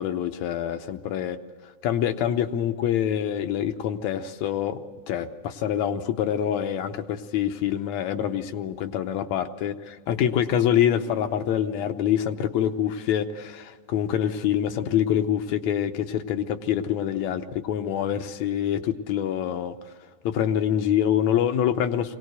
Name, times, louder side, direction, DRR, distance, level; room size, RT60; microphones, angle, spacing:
voice 1, 0.0-1.4 1.6-4.8 5.1-19.8 20.3-22.2, left 10 dB, 75° left, 8 dB, 2.0 m, -25 dB
22.5 x 18.0 x 8.0 m, 1.5 s
omnidirectional pair, 3.4 m